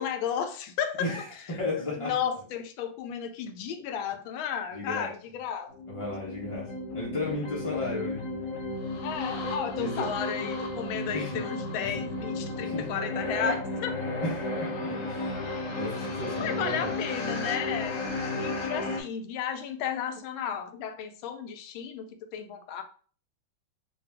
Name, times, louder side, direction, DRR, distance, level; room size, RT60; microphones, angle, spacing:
voice 1, 0.0-1.1 1.7-5.7 9.0-13.9 16.4-18.1 18.4-22.8, left 8 dB, 85° left, 1.4 m, -33 dB
voice 2, 1.0-2.1 4.7-5.1 5.9-8.3 9.7-10.1 11.1-11.4 11.7-11.9 12.6-12.9 14.2-15.3 15.7-16.9, left 2 dB, 40° left, 0.4 m, -34 dB
sound 1, 5.7-19.0, left 2 dB, 55° left, 0.9 m, -33 dB
3.9 x 2.4 x 3.3 m
omnidirectional pair, 2.2 m